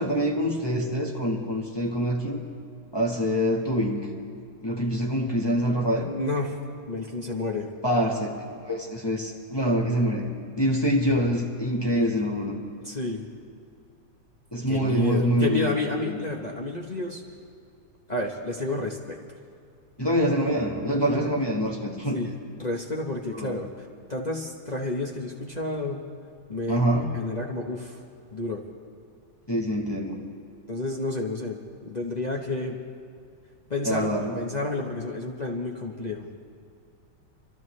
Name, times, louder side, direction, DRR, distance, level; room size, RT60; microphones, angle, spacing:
voice 1, 0.0-2.4 2.9-4.0 4.6-6.1 7.8-8.3 8.7-12.6 14.5-15.7 16.1-16.2 20.0-22.2 23.3-23.5 26.7-27.1 29.5-30.2 33.8-34.4, equal, 15° left, -2 dB, 1.1 m, -25 dB
voice 2, 6.1-6.6 6.9-7.7 12.8-13.3 14.7-17.2 18.1-19.2 22.1-26.0 26.5-26.8 27.1-28.0 28.3-28.6 30.7-32.8 33.7-36.3, left 2 dB, 45° left, -1 dB, 0.5 m, -30 dB
28.0 x 12.5 x 3.2 m, 2.5 s
omnidirectional pair, 2.3 m